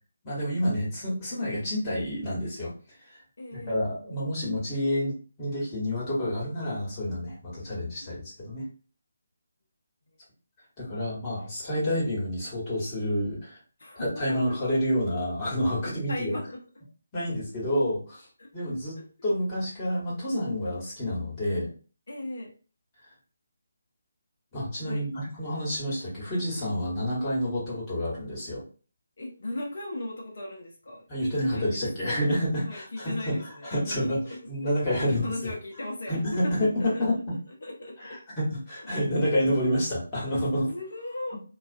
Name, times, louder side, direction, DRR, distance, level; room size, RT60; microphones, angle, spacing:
voice 1, 0.2-2.7 3.1-3.2 3.5-5.1 5.4-8.6 10.8-13.6 14.0-16.4 17.1-18.3 18.5-19.0 19.2-21.7 24.5-28.6 31.1-33.3 33.6-34.2 34.5-35.5 36.1-37.3 38.0-40.7, equal, 20° left, -6 dB, 1.3 m, -28 dB
voice 2, 3.4-3.8 13.8-14.6 15.8-16.6 18.4-18.5 18.9-19.0 22.1-22.5 24.9-25.1 29.2-31.8 32.6-34.7 35.0-37.1 37.6-38.2 40.7-41.4, left 1 dB, 55° left, -2 dB, 0.7 m, -37 dB
2.4 x 2.3 x 2.5 m, 0.38 s
figure-of-eight pair, 150°, 0 cm